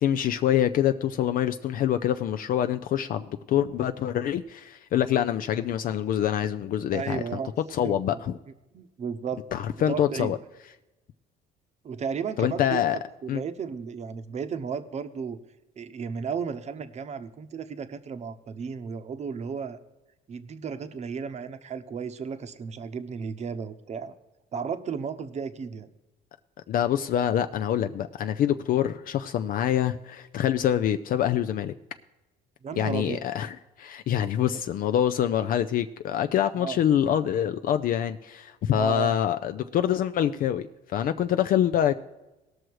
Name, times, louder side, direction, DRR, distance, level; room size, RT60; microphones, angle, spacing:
voice 1, 0.0-7.4 7.7-8.4 9.5-10.4 12.4-13.0 13.3-13.4 26.7-31.7 32.8-41.9, left 10 dB, 55° left, 8 dB, 0.4 m, -25 dB
voice 2, 6.9-7.5 7.8-8.0 8.7-9.4 9.9-10.3 11.8-15.4 15.8-19.8 20.3-24.1 24.5-25.9 32.6-33.2 36.6-36.8 38.7-39.2, right 6 dB, 40° right, 10 dB, 0.8 m, -34 dB
18.0 x 6.3 x 4.7 m, 1.0 s
cardioid pair, 110°, 17 cm